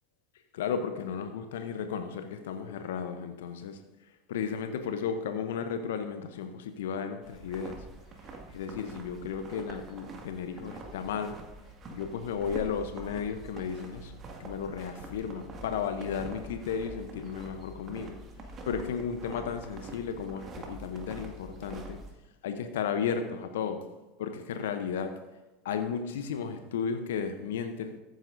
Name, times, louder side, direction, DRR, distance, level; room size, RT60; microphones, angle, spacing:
voice 1, 0.5-3.8 4.3-7.8 8.5-11.4 11.9-18.1 18.6-22.0 22.4-23.8 24.2-25.1 25.6-27.9, left 7 dB, 75° left, 8 dB, 0.7 m, -34 dB
sound 1, 7.2-22.1, right 2 dB, 35° right, 1.9 m, -45 dB
14.5 x 9.1 x 2.6 m, 1.1 s
hypercardioid pair, 80°, 0 cm